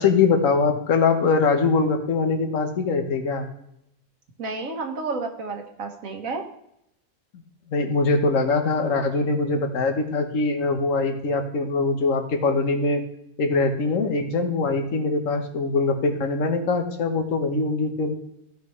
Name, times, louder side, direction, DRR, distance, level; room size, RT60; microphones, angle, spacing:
voice 1, 0.0-3.5 7.7-13.0 13.4-18.2, left 4 dB, 70° left, 6 dB, 1.5 m, -22 dB
voice 2, 4.4-6.4, right 3 dB, 70° right, 4 dB, 1.7 m, -31 dB
14.5 x 5.8 x 3.2 m, 0.78 s
omnidirectional pair, 1.5 m